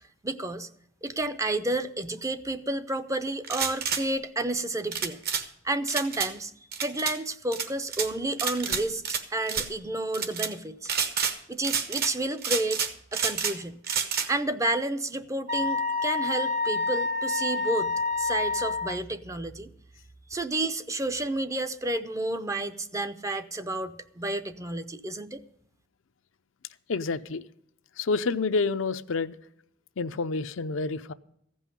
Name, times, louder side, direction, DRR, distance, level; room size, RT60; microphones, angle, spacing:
voice 1, 0.2-0.7 1.0-5.2 5.6-6.5 6.8-10.9 11.5-12.8 13.1-13.8 14.3-19.7 20.3-25.4, right 2 dB, 15° right, 10 dB, 0.5 m, -31 dB
sound 1, 3.4-4.0 4.9-5.4 5.9-6.3 6.7-7.2 7.5-8.1 8.4-9.2 9.5-9.7 10.1-10.5 10.9-11.4 11.6-12.1 12.4-13.6 13.8-14.3, right 6 dB, 50° right, 1.1 m, -29 dB
Wind instrument woodwind instrument, 15.5-19.0, left 3 dB, 80° right, 1.0 m, -28 dB
voice 2, 26.9-27.4 28.0-29.4 30.0-31.1, left 4 dB, 75° left, 11 dB, 0.5 m, -28 dB
15.0 x 5.5 x 9.8 m, 0.71 s
head